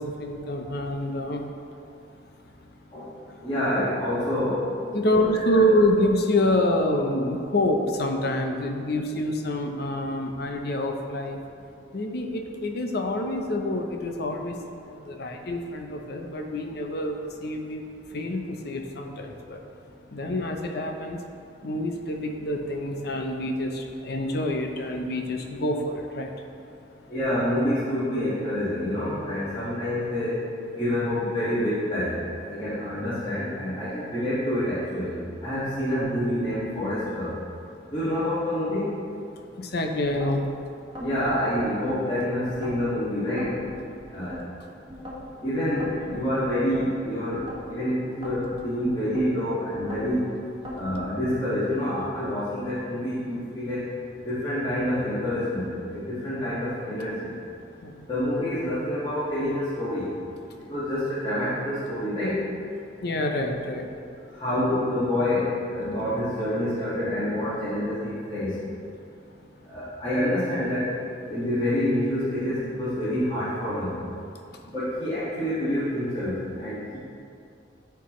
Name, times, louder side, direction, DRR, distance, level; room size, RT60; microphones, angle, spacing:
voice 1, 0.0-1.5 4.9-11.4 11.9-14.6 14.8-19.6 20.1-21.2 21.6-26.5 39.6-40.4 46.1-46.2 57.8-58.1 63.0-63.9 74.5-74.6, left 1 dB, 60° left, 3 dB, 0.7 m, -27 dB
voice 2, 3.4-4.7 5.0-5.2 5.5-5.6 27.1-30.4 30.7-37.3 37.9-38.9 41.0-43.5 44.1-44.4 45.4-47.4 47.7-50.2 50.7-53.9 54.2-57.3 58.1-60.1 60.7-62.4 64.3-68.6 69.7-71.0 71.2-74.0 74.7-77.0, left 1 dB, 25° left, -14 dB, 1.8 m, -27 dB
sound 1, 40.2-40.5 41.0-42.0 42.5-42.9 43.4-44.4 44.9-45.3 45.8-46.9 47.3-47.7 48.2-49.3 49.7-50.2 50.7-51.1, left 1 dB, 25° right, 1.3 m, -39 dB
13.0 x 4.6 x 3.1 m, 2.5 s
head